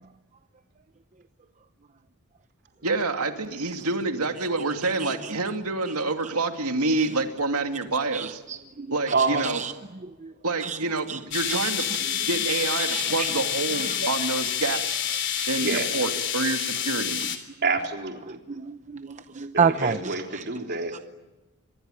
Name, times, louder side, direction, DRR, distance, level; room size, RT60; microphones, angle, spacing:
voice 1, 2.8-8.4 8.9-9.6 10.4-11.9 12.3-15.0 15.5-17.2, right 3 dB, 80° right, 6 dB, 2.6 m, -27 dB
voice 2, 8.1-8.9 9.4-9.7 10.2-10.3 10.6-10.8 11.1-11.2 11.5-11.7 12.8-13.3 13.9-14.0 18.3-20.4 20.9-21.0, right 6 dB, 35° right, 9 dB, 0.8 m, -29 dB
voice 3, 9.1-9.5 15.6-15.9 17.6-18.4 19.5-21.0, right 4 dB, 50° right, 3 dB, 3.8 m, -27 dB
sound 1, 11.3-17.4, left 9 dB, 55° left, 3.5 m, -28 dB
26.5 x 22.0 x 9.1 m, 1.1 s
head